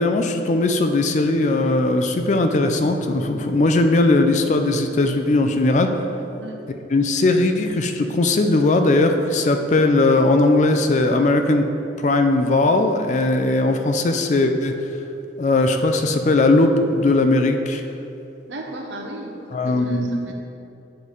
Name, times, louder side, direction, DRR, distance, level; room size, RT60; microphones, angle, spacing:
voice 1, 0.0-5.9 6.9-11.6 12.0-14.8 15.4-17.8 19.5-20.3, left 2 dB, 40° left, 6 dB, 0.4 m, -19 dB
voice 2, 18.5-20.3, right 1 dB, 85° right, 1 dB, 0.8 m, -35 dB
8.9 x 3.2 x 4.1 m, 2.8 s
head